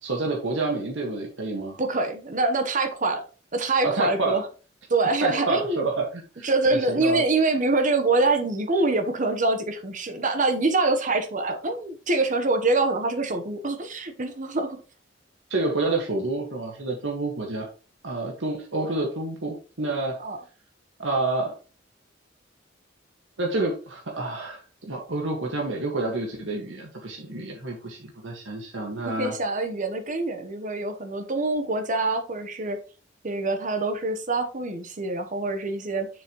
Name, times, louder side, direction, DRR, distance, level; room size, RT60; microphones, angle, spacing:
voice 1, 0.0-1.8 3.8-4.4 5.2-7.2 15.5-17.7 18.0-20.2 21.0-21.5 23.4-29.3, right 3 dB, 85° right, 0 dB, 1.8 m, -28 dB
voice 2, 1.8-3.2 3.5-4.5 4.9-5.8 6.4-14.8 20.2-20.4 29.0-32.8 33.2-36.1, right 3 dB, 45° right, 7 dB, 1.1 m, -25 dB
7.0 x 6.9 x 3.1 m, 0.34 s
head